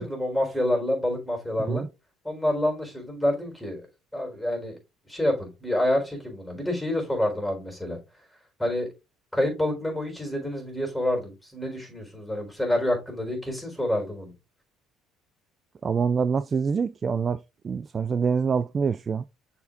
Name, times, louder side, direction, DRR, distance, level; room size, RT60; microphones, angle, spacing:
voice 1, 0.0-1.8 2.2-3.8 4.1-4.8 5.1-8.0 8.6-8.9 9.3-14.3, left 1 dB, 5° left, 4.2 m, -27 dB
voice 2, 15.8-19.2, right 6 dB, 35° right, 0.3 m, -26 dB
6.7 x 4.4 x 3.7 m
hypercardioid pair, 70°, 0 cm